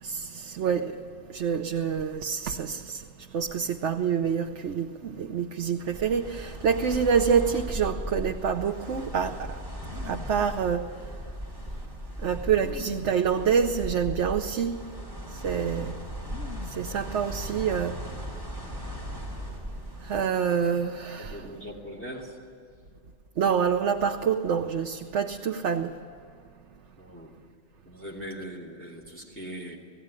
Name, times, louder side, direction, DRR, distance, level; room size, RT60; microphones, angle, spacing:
voice 1, 0.0-1.0 1.3-3.0 3.3-9.6 10.0-10.9 12.2-14.8 15.3-16.0 16.7-18.0 20.0-21.5 23.4-25.9, right 7 dB, 85° right, 1.1 m, -27 dB
sound 1, 5.8-20.2, equal, 20° right, 5.2 m, -38 dB
sound 2, 9.8-10.5 11.4-11.5 12.5-13.3 14.1-14.2 14.6-15.1 16.2-17.0 17.3-17.9, left 6 dB, 85° left, 1.4 m, -44 dB
voice 2, 21.2-22.4 27.0-27.4 27.8-29.8, equal, 10° left, 2.7 m, -40 dB
18.5 x 16.0 x 9.7 m
omnidirectional pair, 1.2 m